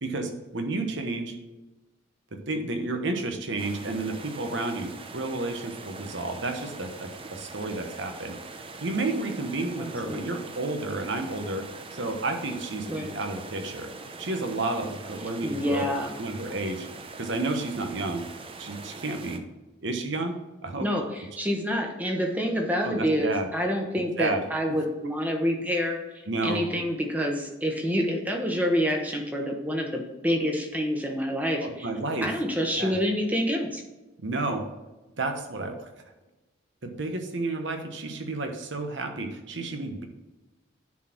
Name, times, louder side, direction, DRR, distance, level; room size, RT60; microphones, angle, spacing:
voice 1, 0.0-1.3 2.3-8.4 8.8-11.6 11.9-13.9 14.2-15.8 16.2-16.9 17.2-18.3 18.6-19.4 19.8-20.3 20.6-20.9 22.8-23.5 24.2-24.4 24.7-24.8 26.3-26.6 31.6-32.3 32.7-33.0 34.2-34.6 35.2-35.7 36.8-40.0, right 2 dB, 65° right, 5 dB, 1.1 m, -31 dB
sound 1, 3.6-19.4, right 3 dB, 25° right, 0.6 m, -43 dB
voice 2, 9.7-10.4 12.9-13.1 15.4-16.1 20.8-26.0 26.4-31.9 32.2-33.8, equal, 10° right, 1 dB, 1.0 m, -27 dB
9.9 x 4.2 x 4.5 m, 1.1 s
head